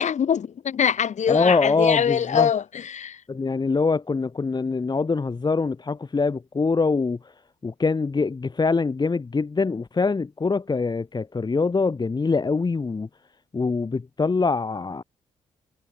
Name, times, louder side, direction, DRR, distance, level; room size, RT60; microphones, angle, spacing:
voice 1, 0.0-3.2, left 8 dB, 50° left, 6.7 m, -23 dB
voice 2, 1.3-2.5 3.3-7.3 7.6-13.1 13.5-15.0, left 4 dB, 30° left, 1.6 m, -24 dB
hypercardioid pair, 45°, 15 cm